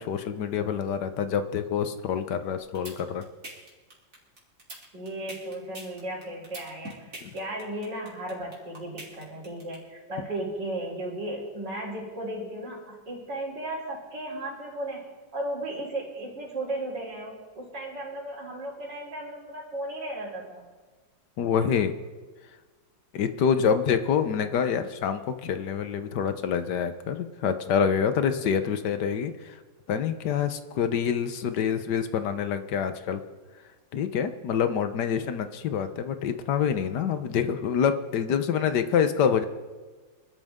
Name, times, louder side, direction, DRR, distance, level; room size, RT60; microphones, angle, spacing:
voice 1, 0.0-3.2 7.2-7.3 21.4-21.9 23.1-29.6 29.9-33.2 33.9-39.5, left 7 dB, 65° left, 9 dB, 1.5 m, -26 dB
sound 1, 2.5-9.8, right 1 dB, 45° right, 3.6 m, -42 dB
voice 2, 4.9-7.1 7.3-15.1 15.3-20.7, right 1 dB, 65° right, -8 dB, 4.3 m, -35 dB
23.5 x 13.0 x 3.7 m, 1.3 s
omnidirectional pair, 2.1 m